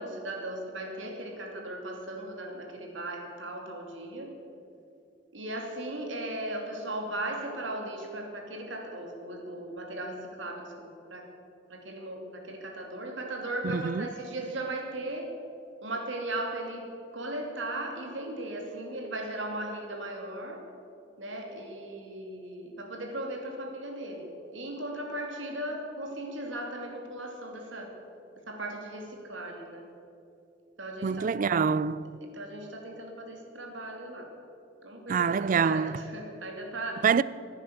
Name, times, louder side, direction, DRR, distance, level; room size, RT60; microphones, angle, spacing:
voice 1, 0.0-4.3 5.3-11.3 11.7-15.4 15.8-16.9 17.1-20.6 21.2-27.9 28.5-29.8 30.8-31.3 32.3-34.3 34.8-37.1, right 1 dB, 80° right, 2.7 m, -37 dB
voice 2, 13.7-14.1 31.0-32.1 35.1-36.0 37.0-37.2, right 6 dB, 45° right, 0.4 m, -25 dB
15.5 x 9.7 x 7.9 m
head